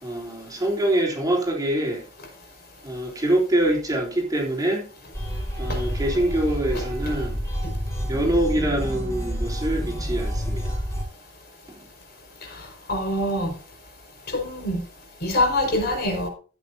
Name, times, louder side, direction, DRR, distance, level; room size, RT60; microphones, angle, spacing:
voice 1, 0.0-2.0 2.8-4.8 5.6-7.4 8.1-10.6, right 1 dB, 20° right, 3.4 m, -24 dB
sound 1, 5.1-11.0, equal, 15° left, 5.5 m, -29 dB
voice 2, 12.6-13.5 14.3-14.8 15.2-16.3, left 1 dB, 55° left, 5.2 m, -25 dB
15.5 x 9.3 x 2.7 m
head